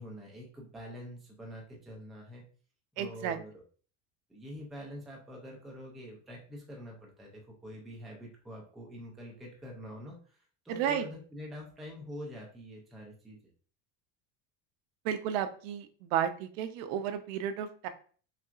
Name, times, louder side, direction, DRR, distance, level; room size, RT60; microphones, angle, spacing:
voice 1, 0.0-2.4 3.0-3.5 4.3-13.4, equal, ahead, -2 dB, 0.3 m, -45 dB
voice 2, 3.0-3.4 10.7-11.0 15.0-17.9, right 9 dB, 75° right, 9 dB, 0.7 m, -32 dB
5.8 x 2.3 x 2.4 m, 0.42 s
cardioid pair, 180°, 37 cm